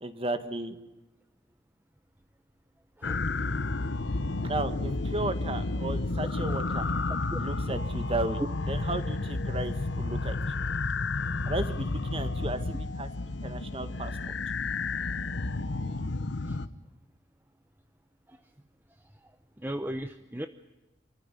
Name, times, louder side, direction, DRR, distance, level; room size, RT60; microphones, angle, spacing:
voice 1, 0.0-0.8 4.4-6.8 7.3-8.4 8.7-10.4 11.5-13.1 13.4-14.3, right 2 dB, 30° right, 9 dB, 1.6 m, -34 dB
sound 1, 3.0-16.7, left 3 dB, 80° left, 1.0 m, -31 dB
voice 2, 19.6-20.5, right 1 dB, 10° right, 8 dB, 0.7 m, -36 dB
27.5 x 14.5 x 10.0 m, 1.0 s
head